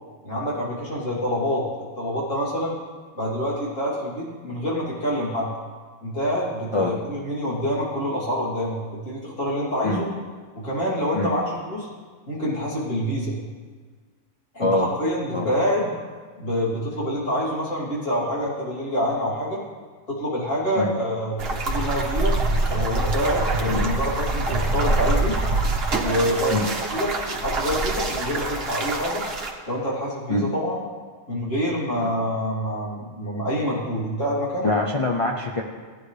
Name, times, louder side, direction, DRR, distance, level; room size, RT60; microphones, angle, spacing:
voice 1, 0.2-1.7 2.0-2.8 3.1-5.5 6.0-8.8 9.0-10.1 10.5-11.9 12.3-13.3 14.5-15.9 16.4-19.6 20.1-22.4 22.7-25.3 26.0-29.2 29.7-30.8 31.3-34.7, equal, 80° left, -7 dB, 3.4 m, -26 dB
sound 1, 21.4-29.5, right 2 dB, 55° right, 1.3 m, -25 dB
voice 2, 34.6-35.6, left 2 dB, 35° left, -1 dB, 0.6 m, -24 dB
15.5 x 9.4 x 3.3 m, 1.5 s
omnidirectional pair, 1.3 m